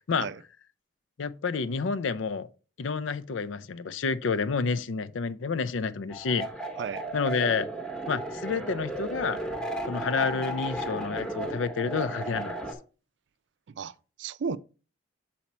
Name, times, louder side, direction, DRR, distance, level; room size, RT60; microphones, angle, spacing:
voice 1, 1.2-2.5 2.8-6.5 7.1-7.7 8.1-9.4 9.8-12.6, left 5 dB, 85° left, 0.5 m, -29 dB
sound 1, 6.1-12.7, right 1 dB, 5° left, 0.9 m, -34 dB
voice 2, 13.7-14.6, right 5 dB, 65° right, 0.4 m, -34 dB
7.2 x 4.3 x 4.2 m
head